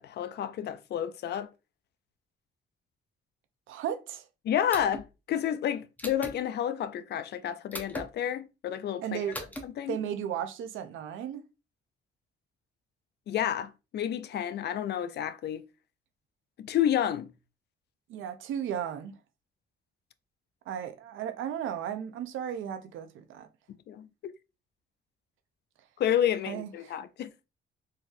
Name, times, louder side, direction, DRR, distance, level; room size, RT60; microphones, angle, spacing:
voice 1, 0.0-1.5 4.4-9.2 9.6-10.0 13.3-15.6 16.6-17.3 23.9-24.3 26.0-27.3, left 10 dB, 60° left, 0.4 m, -30 dB
voice 2, 3.7-4.2 9.0-9.4 9.9-11.4 18.1-19.1 20.7-23.5 26.5-26.9, right 9 dB, 85° right, 0.6 m, -35 dB
sound 1, 4.7-5.1 6.0-6.4 7.7-8.1 9.3-9.6, equal, 10° left, 0.7 m, -38 dB
4.0 x 2.6 x 2.5 m
cardioid pair, 90°, 20 cm